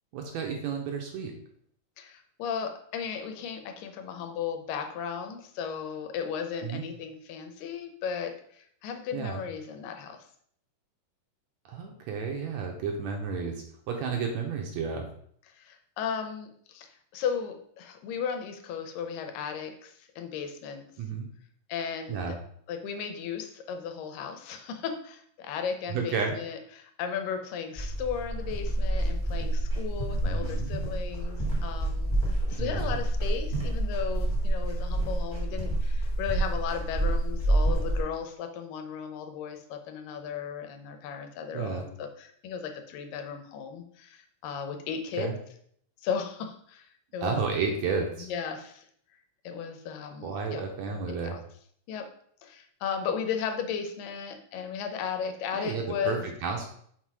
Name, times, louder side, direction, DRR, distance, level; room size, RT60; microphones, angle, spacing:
voice 1, 0.1-1.3 6.6-6.8 9.1-9.4 11.7-15.1 21.0-21.3 22.1-22.4 25.9-26.4 30.2-30.7 32.6-33.0 41.5-41.8 45.2-45.3 47.2-48.3 50.2-51.4 55.5-56.6, right 5 dB, 75° right, 2 dB, 1.8 m, -32 dB
voice 2, 2.0-10.3 15.5-20.9 21.7-22.4 22.7-45.3 46.0-47.4 48.2-48.9 49.4-50.6 50.9-51.4 51.9-52.1 52.4-56.3, left 7 dB, 90° left, 6 dB, 2.5 m, -35 dB
sound 1, 27.8-38.0, right 1 dB, 15° left, 1.0 m, -28 dB
5.9 x 4.1 x 4.7 m, 0.64 s
omnidirectional pair, 3.8 m